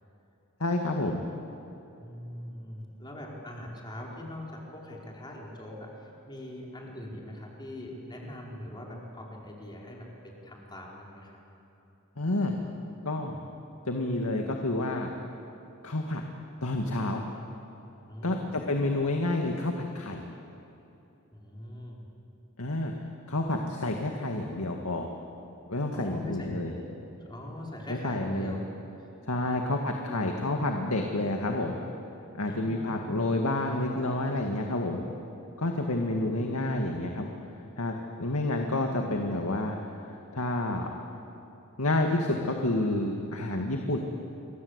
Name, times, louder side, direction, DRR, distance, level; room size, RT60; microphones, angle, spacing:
voice 1, 0.6-1.2 12.2-12.5 13.1-13.4 13.9-15.1 15.8-16.2 16.6-17.2 18.2-20.2 22.6-22.9 23.3-25.1 25.7-26.7 27.9-28.5 29.3-31.8 32.4-35.0 35.6-37.3 37.8-39.8 40.3-40.9 41.8-44.0, left 2 dB, 85° left, 2 dB, 2.0 m, -29 dB
voice 2, 1.9-11.4 18.0-18.6 21.3-22.1 25.9-26.9 27.3-28.6 29.0-29.1 29.4-30.4 32.4-33.4 35.9-36.5, left 1 dB, 20° left, -2 dB, 4.7 m, -42 dB
28.5 x 23.5 x 8.1 m, 3.0 s
head